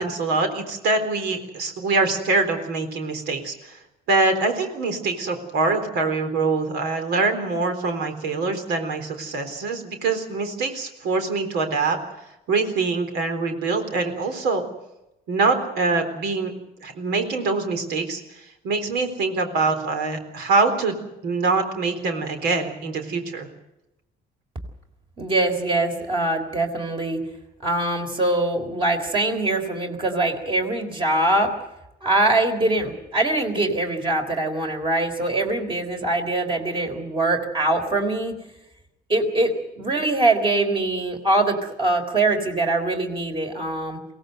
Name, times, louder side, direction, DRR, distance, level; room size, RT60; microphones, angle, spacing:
voice 1, 0.0-3.8 4.1-12.0 12.5-14.6 15.3-16.5 16.8-21.0 21.2-23.5, right 3 dB, 80° right, 7 dB, 3.9 m, -24 dB
voice 2, 25.2-27.2 27.6-31.5 32.0-38.4 39.1-44.0, right 2 dB, 30° right, 4 dB, 3.7 m, -23 dB
23.0 x 17.5 x 8.0 m, 0.92 s
cardioid pair, 110°, 17 cm